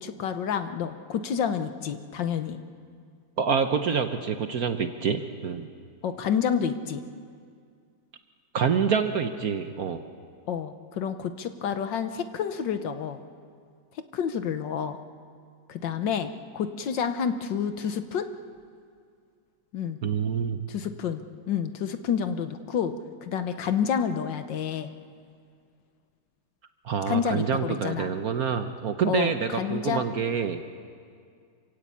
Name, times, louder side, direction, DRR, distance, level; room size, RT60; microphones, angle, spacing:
voice 1, 0.0-2.6 6.0-7.0 10.5-13.2 14.1-15.0 15.7-18.3 19.7-20.0 20.7-22.9 23.2-24.9 27.1-28.1 29.0-30.0, left 7 dB, 65° left, 9 dB, 1.6 m, -29 dB
voice 2, 3.4-5.7 8.5-10.0 20.0-20.6 26.8-30.6, right 6 dB, 55° right, 8 dB, 1.1 m, -27 dB
26.5 x 16.5 x 8.5 m, 2.2 s
omnidirectional pair, 2.2 m